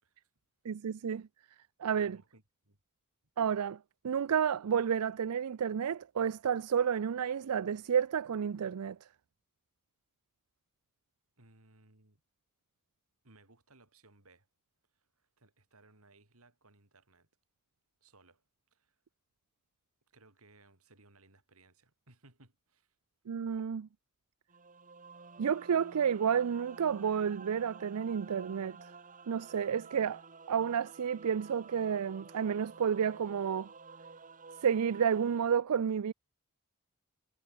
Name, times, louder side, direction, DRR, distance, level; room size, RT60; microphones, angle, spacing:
voice 1, 0.6-1.3 1.8-2.2 3.4-3.8 4.0-9.0 23.3-23.9 25.4-28.8 29.3-30.2 30.5-33.7 34.6-36.1, right 7 dB, 90° right, 0.4 m, -31 dB
voice 2, 2.0-2.8 11.4-12.2 13.2-14.5 14.9-17.3 18.0-18.4 18.7-19.0 20.1-23.0, right 2 dB, 70° right, 4.8 m, -63 dB
sound 1, 24.5-35.5, right 4 dB, 40° right, 3.8 m, -52 dB
head